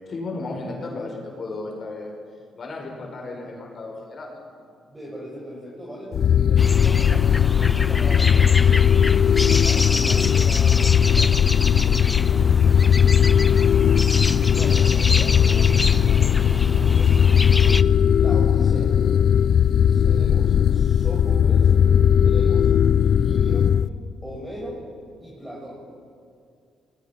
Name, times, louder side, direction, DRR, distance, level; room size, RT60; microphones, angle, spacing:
voice 1, 0.1-2.1 2.5-4.4 12.2-12.3 13.0-14.0, left 2 dB, 45° left, 0 dB, 5.5 m, -35 dB
voice 2, 4.9-11.3 11.7-12.3 14.5-18.9 19.9-21.7 22.2-23.7 24.2-24.8 25.2-25.7, equal, 10° right, -4 dB, 6.2 m, -38 dB
sound 1, 6.1-23.9, left 8 dB, 60° left, 0.6 m, -18 dB
sound 2, 6.6-17.8, left 2 dB, 20° left, 0.6 m, -28 dB
27.0 x 20.0 x 6.0 m, 2.3 s
cardioid pair, 90°, 0 cm